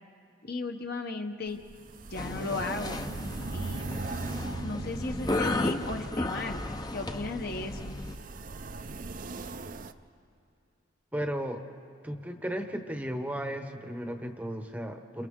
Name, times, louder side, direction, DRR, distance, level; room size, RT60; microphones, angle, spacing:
voice 1, 0.4-1.6 2.1-3.0 3.5-3.9 4.6-6.6 6.9-7.9, left 3 dB, 50° left, 5 dB, 1.0 m, -35 dB
sound 1, 1.5-9.9, right 3 dB, 40° right, 0.5 m, -40 dB
sound 2, 2.1-8.1, left 2 dB, 20° left, 0.6 m, -34 dB
voice 2, 11.1-11.6 12.0-15.3, equal, 5° right, 5 dB, 0.9 m, -35 dB
29.0 x 28.0 x 3.7 m, 2.7 s
head